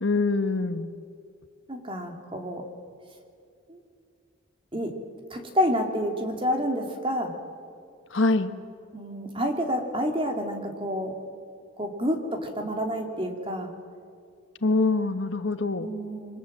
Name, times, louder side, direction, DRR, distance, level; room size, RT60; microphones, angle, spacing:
voice 1, 0.0-0.9 8.1-8.5 14.6-15.9, left 3 dB, 75° left, 10 dB, 1.3 m, -24 dB
voice 2, 1.7-2.6 3.7-3.8 4.7-4.9 5.3-7.3 8.9-11.1 11.8-13.7 15.8-16.4, equal, 25° right, 3 dB, 2.9 m, -29 dB
27.0 x 24.5 x 7.5 m, 2.3 s
head